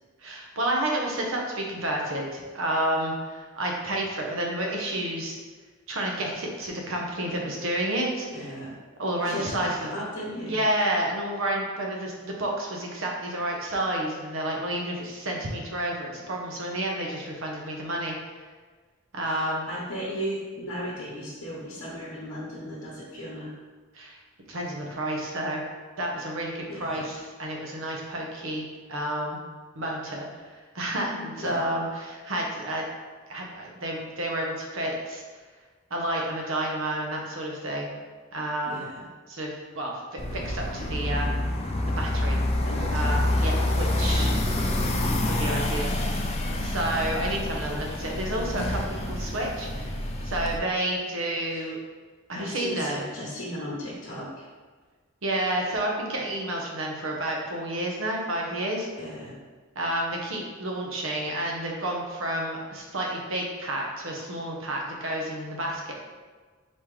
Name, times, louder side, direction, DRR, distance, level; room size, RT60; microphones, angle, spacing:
voice 1, 0.2-5.4 5.9-8.5 9.0-9.9 10.5-18.2 19.1-19.7 23.9-24.2 24.5-25.6 26.0-29.4 29.8-30.3 30.7-32.9 33.3-35.2 35.9-37.9 38.3-38.8 39.3-41.4 41.8-42.4 42.9-44.3 45.0-49.9 50.2-51.8 52.3-53.1 55.2-58.9 59.8-65.9, right 1 dB, 65° right, -1 dB, 0.8 m, -30 dB
voice 2, 8.3-8.7 9.2-10.6 19.2-23.5 26.7-27.1 31.4-31.6 38.7-39.0 42.6-43.6 51.5-51.7 52.3-54.4 59.0-59.4, equal, 70° left, -7 dB, 0.9 m, -36 dB
sound 1, 40.2-50.6, left 1 dB, 30° left, 0.4 m, -27 dB
4.2 x 3.6 x 3.2 m, 1.4 s
head